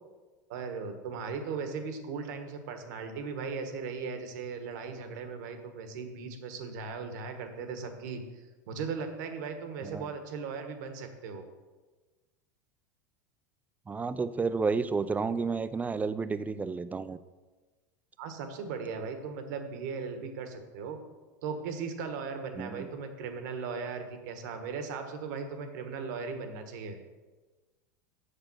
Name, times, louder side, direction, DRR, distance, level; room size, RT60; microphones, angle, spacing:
voice 1, 0.5-11.4 18.2-21.0 21.4-27.0, right 5 dB, 70° right, 6 dB, 1.4 m, -38 dB
voice 2, 13.9-17.2 22.6-22.9, right 4 dB, 15° right, 14 dB, 0.4 m, -31 dB
6.8 x 6.5 x 6.1 m, 1.3 s
hypercardioid pair, 100°, 10 cm